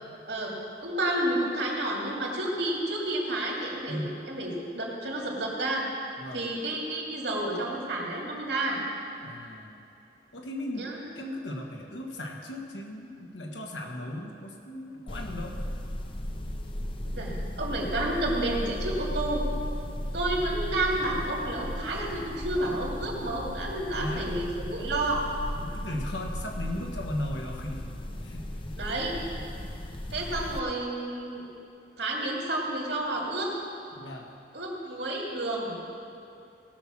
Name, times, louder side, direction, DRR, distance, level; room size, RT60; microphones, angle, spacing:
voice 1, 0.8-5.8 6.3-8.8 10.7-11.0 17.0-19.4 20.1-25.2 28.8-29.2 30.1-31.4 32.0-33.5 34.5-35.8, right 1 dB, 75° right, -2 dB, 2.5 m, -30 dB
voice 2, 9.2-9.8 10.3-10.9 11.1-15.6 24.0-24.3 25.6-28.0 28.2-28.8 29.3-29.4 34.0-34.3, left 1 dB, 85° left, 0 dB, 1.6 m, -37 dB
sound 1, 15.1-30.6, left 1 dB, 30° left, 0.6 m, -35 dB
18.0 x 6.1 x 6.2 m, 2.7 s
head